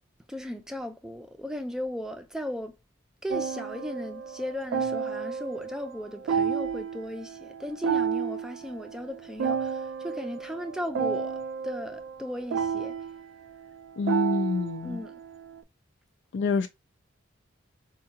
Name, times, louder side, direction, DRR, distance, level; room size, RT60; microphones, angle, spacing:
voice 1, 0.3-2.8 3.2-11.4 11.6-13.0 14.8-15.2, left 1 dB, 5° right, 0.4 m, -36 dB
sound 1, 3.3-15.6, right 6 dB, 75° right, 0.3 m, -32 dB
voice 2, 14.0-15.0 16.3-16.7, left 4 dB, 65° left, 0.3 m, -27 dB
4.6 x 2.2 x 2.8 m
head